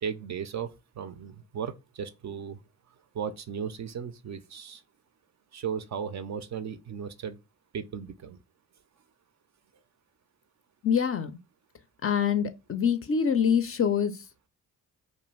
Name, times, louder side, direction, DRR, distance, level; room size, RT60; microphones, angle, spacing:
voice 1, 0.0-2.6 3.1-4.8 5.5-7.4 7.7-8.4, right 7 dB, 40° right, 0.4 m, -36 dB
voice 2, 10.8-11.4 12.0-14.2, left 7 dB, 35° left, 0.4 m, -25 dB
2.4 x 2.3 x 3.0 m
hypercardioid pair, 45°, 43 cm